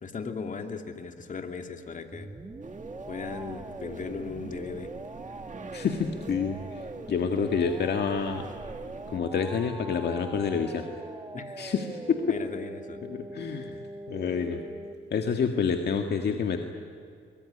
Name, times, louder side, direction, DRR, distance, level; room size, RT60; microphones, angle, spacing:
voice 1, 0.0-2.3 3.1-4.9 11.3-11.6 12.3-13.0, left 5 dB, 40° left, 5 dB, 2.9 m, -37 dB
sound 1, 2.1-14.9, right 2 dB, 20° right, 1.8 m, -42 dB
sound 2, 2.6-9.2, right 4 dB, 40° right, 2.1 m, -46 dB
voice 2, 5.7-6.8 7.1-8.5 9.1-10.9 11.6-12.2 13.1-13.8 14.1-14.6 15.1-16.6, left 6 dB, 55° left, 5 dB, 1.9 m, -28 dB
23.0 x 23.0 x 9.9 m, 2.4 s
cardioid pair, 90°, 20 cm